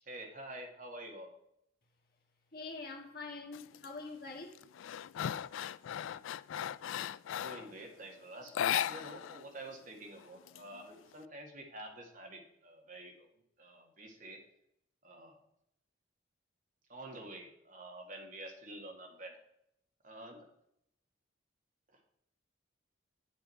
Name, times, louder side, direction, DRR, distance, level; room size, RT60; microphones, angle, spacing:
voice 1, 0.1-1.3 7.3-13.3 13.6-14.4 15.0-15.4 16.9-19.3 20.0-20.4 21.9-22.1, right 1 dB, 40° right, 1.9 m, -48 dB
voice 2, 2.5-4.6, left 3 dB, 50° left, 1.6 m, -45 dB
sound 1, 3.5-3.9 4.3-7.7 8.5-9.4 9.7-9.8 10.2-11.1, left 10 dB, 80° left, 0.3 m, -37 dB
8.8 x 7.2 x 4.4 m
head